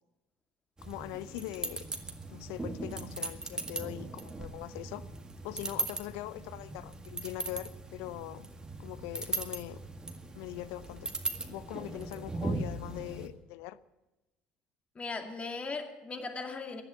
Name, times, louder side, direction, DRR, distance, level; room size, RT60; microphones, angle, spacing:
voice 1, 0.8-1.8 2.3-5.1 5.4-8.5 8.8-9.8 10.3-11.1 11.5-13.8, left 15 dB, 65° left, 17 dB, 0.6 m, -42 dB
sound 1, 0.8-13.3, right 2 dB, 15° right, 1.9 m, -39 dB
voice 2, 15.0-16.8, left 3 dB, 25° left, 5 dB, 2.2 m, -38 dB
15.5 x 10.5 x 8.3 m, 1.0 s
hypercardioid pair, 65°, 5 cm